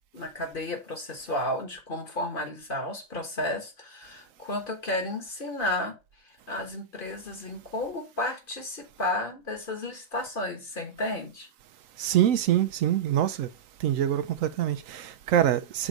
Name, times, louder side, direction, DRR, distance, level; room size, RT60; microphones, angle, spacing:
voice 1, 0.1-6.0 6.5-11.5, left 1 dB, 40° left, 1.4 m, -32 dB
voice 2, 12.0-13.5 13.8-15.9, right 11 dB, 75° right, 1.0 m, -25 dB
6.1 x 3.9 x 4.6 m
omnidirectional pair, 1.4 m